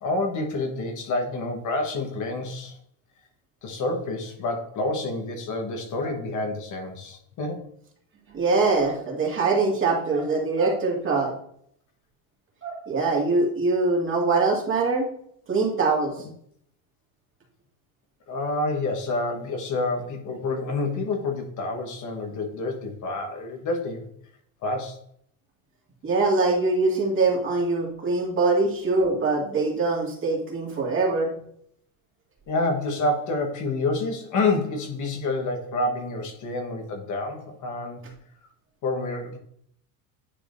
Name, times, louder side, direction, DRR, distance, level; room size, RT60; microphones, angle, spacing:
voice 1, 0.0-2.8 3.6-7.6 18.3-24.1 24.6-25.0 32.5-38.0 38.8-39.4, left 2 dB, 40° left, 3 dB, 1.3 m, -28 dB
voice 2, 8.3-11.4 12.6-15.1 15.5-16.2 26.0-31.3, right 3 dB, 30° right, -2 dB, 2.1 m, -23 dB
10.0 x 4.8 x 2.6 m, 0.67 s
cardioid pair, 135°, 44 cm